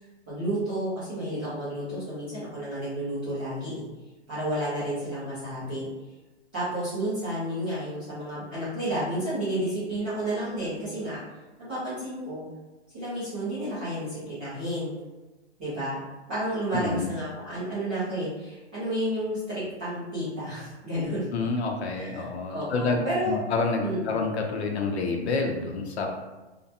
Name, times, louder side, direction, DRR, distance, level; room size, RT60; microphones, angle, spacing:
voice 1, 0.3-3.8 4.3-5.9 6.5-11.2 11.6-12.4 12.9-14.9 15.6-16.0 16.3-21.2 21.9-23.4 23.8-24.3, right 1 dB, 10° right, -16 dB, 0.3 m, -31 dB
voice 2, 16.7-17.1 21.3-26.1, left 3 dB, 70° left, 3 dB, 0.6 m, -28 dB
2.6 x 2.2 x 2.4 m, 1.1 s
hypercardioid pair, 150°, 34 cm